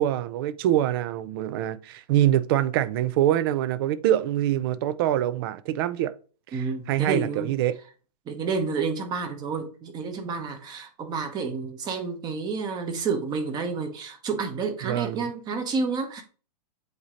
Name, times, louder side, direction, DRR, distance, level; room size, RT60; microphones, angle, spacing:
voice 1, 0.0-6.1 6.5-7.8 14.8-15.2, right 12 dB, 35° right, 0.4 m, -24 dB
voice 2, 6.5-7.5 8.3-16.2, right 4 dB, 20° right, 1.0 m, -30 dB
7.9 x 2.8 x 5.0 m
hypercardioid pair, 155°, 21 cm